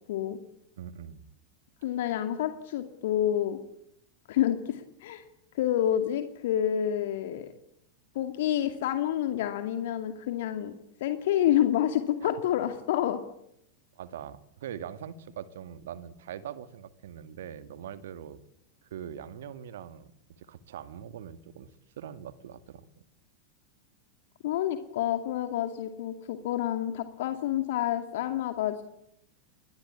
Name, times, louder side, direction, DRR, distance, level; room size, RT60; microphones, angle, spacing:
voice 1, 0.8-1.3 12.2-12.3 14.0-18.4 18.8-21.7 22.0-23.0, right 9 dB, 60° right, 12 dB, 2.0 m, -42 dB
voice 2, 1.8-3.6 4.3-5.2 5.5-7.5 8.1-10.7 11.0-13.2 24.4-28.8, left 11 dB, 55° left, 7 dB, 2.3 m, -28 dB
29.5 x 23.0 x 8.7 m, 0.77 s
figure-of-eight pair, 90°, 0 cm